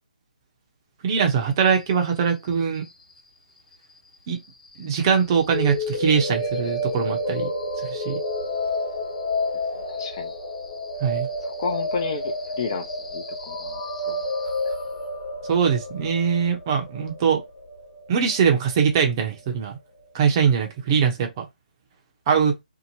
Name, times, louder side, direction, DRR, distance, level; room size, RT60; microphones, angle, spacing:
voice 1, 1.0-2.9 4.3-4.4 4.8-7.5 7.9-8.2 11.0-11.3 15.5-17.4 18.1-19.8 20.1-21.5 22.3-22.6, right 6 dB, 30° right, 0.7 m, -22 dB
sound 1, 5.5-19.4, left 1 dB, 65° left, 1.2 m, -30 dB
voice 2, 9.9-10.3 11.4-12.9 13.1-13.8 14.1-14.2, left 5 dB, 35° left, 0.6 m, -31 dB
2.8 x 2.1 x 2.9 m
figure-of-eight pair, 150°, 5 cm